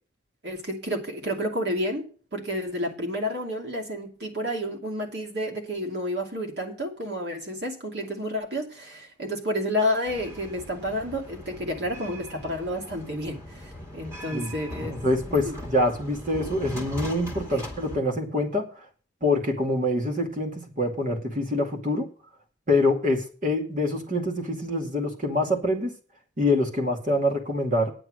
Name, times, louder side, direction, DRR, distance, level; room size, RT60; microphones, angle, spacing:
voice 1, 0.4-14.9 15.4-15.6 17.5-17.6, equal, 65° right, 2.6 m, -30 dB
sound 1, 10.0-18.0, left 1 dB, 15° right, 2.4 m, -40 dB
voice 2, 14.8-18.6 19.2-22.1 22.7-25.9 26.4-27.9, left 1 dB, 45° right, 2.3 m, -25 dB
9.7 x 7.8 x 6.3 m
head